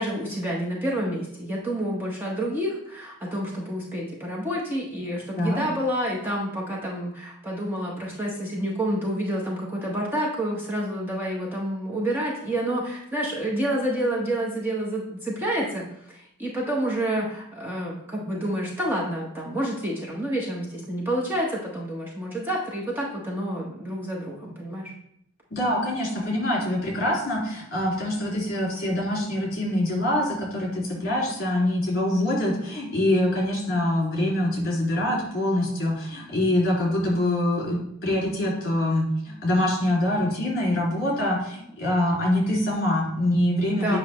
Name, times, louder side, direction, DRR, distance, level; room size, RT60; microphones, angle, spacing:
voice 1, 0.0-24.9 43.7-44.0, right 1 dB, 10° right, -4 dB, 0.9 m, -28 dB
voice 2, 25.5-44.0, left 1 dB, 45° left, -3 dB, 2.5 m, -24 dB
8.1 x 5.4 x 3.1 m, 0.74 s
head